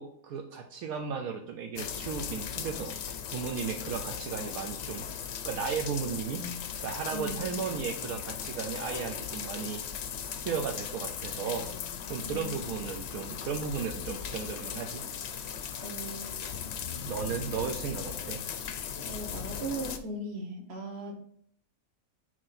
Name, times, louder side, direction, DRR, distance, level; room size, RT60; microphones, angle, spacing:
voice 1, 0.0-2.9 3.3-5.1 5.4-6.5 6.8-9.8 10.4-11.7 12.1-15.0 17.1-18.5, right 6 dB, 80° right, 3 dB, 1.1 m, -35 dB
sound 1, 1.8-20.0, left 8 dB, 60° left, 0.7 m, -38 dB
sound 2, 6.4-6.9 9.8-13.3, left 6 dB, 30° left, 0.4 m, -51 dB
voice 2, 7.1-7.5 12.2-12.6 15.8-16.7 19.1-21.1, right 1 dB, 45° right, 3 dB, 1.4 m, -38 dB
6.4 x 4.5 x 4.1 m, 0.65 s
omnidirectional pair, 1.5 m